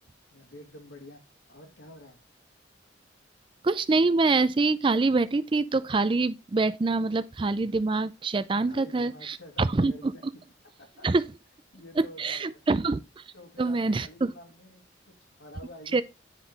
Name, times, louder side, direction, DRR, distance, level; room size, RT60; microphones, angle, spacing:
voice 1, 0.3-1.2 1.5-2.2 8.7-10.4 10.8-11.1 11.7-12.6 13.3-16.0, left 1 dB, 90° left, 2.0 m, -49 dB
voice 2, 3.6-10.1 11.0-11.3 12.0-13.2 13.6-14.3 15.9-16.0, right 3 dB, 25° right, 0.4 m, -25 dB
10.0 x 3.8 x 4.0 m
head